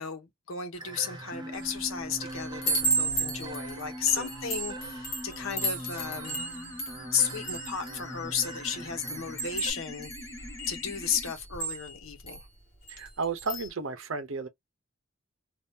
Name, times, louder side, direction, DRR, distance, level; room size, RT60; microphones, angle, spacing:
voice 1, 0.0-6.4 7.1-10.1 10.7-12.4, left 7 dB, 75° left, 1.0 m, -33 dB
sound 1, 0.7-9.7, right 2 dB, 20° right, 0.6 m, -45 dB
sound 2, 1.3-11.3, equal, 15° left, 0.7 m, -43 dB
Chime, 1.5-1.9 2.3-8.6 9.0-12.4 12.9-13.1 13.4-13.7, right 2 dB, 45° left, 1.4 m, -34 dB
voice 2, 12.9-14.5, right 4 dB, 70° right, 0.7 m, -33 dB
2.7 x 2.4 x 3.5 m
head